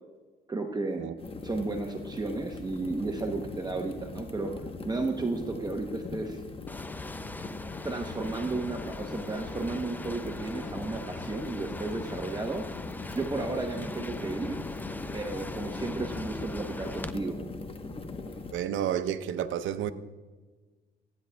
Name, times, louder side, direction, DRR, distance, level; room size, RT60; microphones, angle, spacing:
voice 1, 0.5-1.0 1.4-4.5 4.8-6.4 7.8-12.6 13.1-14.6 15.1-17.4, right 3 dB, 20° right, 3 dB, 0.8 m, -33 dB
sound 1, 1.2-18.5, left 3 dB, 30° left, 1.0 m, -40 dB
sound 2, 6.7-17.1, left 2 dB, 10° left, 0.4 m, -41 dB
voice 2, 18.5-19.9, right 10 dB, 80° right, 11 dB, 0.6 m, -30 dB
15.0 x 9.5 x 2.2 m, 1.3 s
cardioid pair, 90°, 20 cm